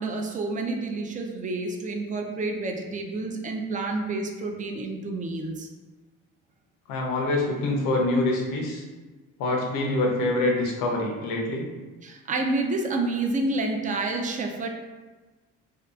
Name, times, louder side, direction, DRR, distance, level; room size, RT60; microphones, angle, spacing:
voice 1, 0.0-5.7 12.0-14.7, right 2 dB, 25° right, 2 dB, 0.4 m, -29 dB
voice 2, 6.9-8.8 9.4-11.7, left 2 dB, 80° left, 0 dB, 0.7 m, -25 dB
2.7 x 2.3 x 2.3 m, 1.2 s
supercardioid pair, 70°, 32 cm